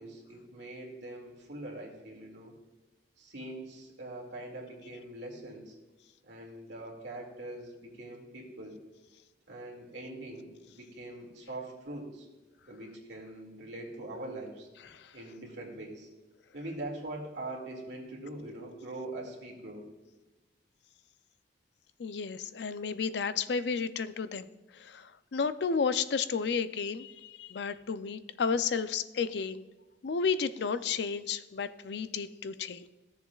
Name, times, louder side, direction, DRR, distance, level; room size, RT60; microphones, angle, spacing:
voice 1, 0.0-2.5 3.2-5.7 6.2-8.8 9.5-12.3 12.6-14.7 15.1-16.1 16.5-19.9, right 1 dB, 85° right, -1 dB, 2.2 m, -43 dB
voice 2, 22.0-24.5 24.7-29.6 30.0-32.9, left 5 dB, 75° left, 12 dB, 0.4 m, -32 dB
15.0 x 7.0 x 2.4 m, 1.2 s
head